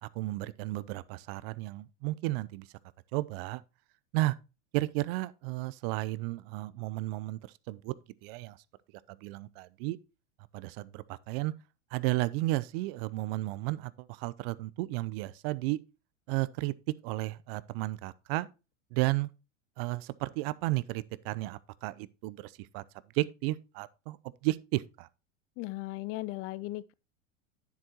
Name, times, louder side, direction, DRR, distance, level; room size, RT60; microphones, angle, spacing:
voice 1, 0.0-2.7 3.1-3.6 4.1-4.4 4.7-7.9 8.2-8.6 9.2-10.0 10.5-11.5 11.9-15.8 16.3-16.7 17.0-18.5 18.9-19.3 19.8-22.8 23.1-24.2 24.4-25.1, right 19 dB, 50° right, 0.6 m, -33 dB
voice 2, 25.6-26.9, left 18 dB, 35° left, 0.5 m, -37 dB
9.7 x 7.7 x 2.9 m
hypercardioid pair, 105°, 38 cm